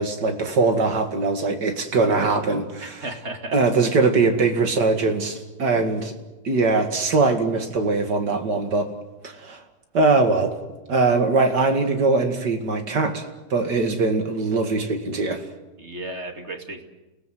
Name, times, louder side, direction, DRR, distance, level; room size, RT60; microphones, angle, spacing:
voice 1, 0.0-3.0 3.5-6.1 6.4-8.9 9.2-9.6 9.9-10.6 10.9-13.3 13.5-15.4, right 3 dB, 70° right, 2.7 m, -21 dB
voice 2, 2.8-3.6 15.8-16.8, right 1 dB, 40° right, 2.7 m, -34 dB
30.0 x 18.0 x 7.8 m
omnidirectional pair, 1.9 m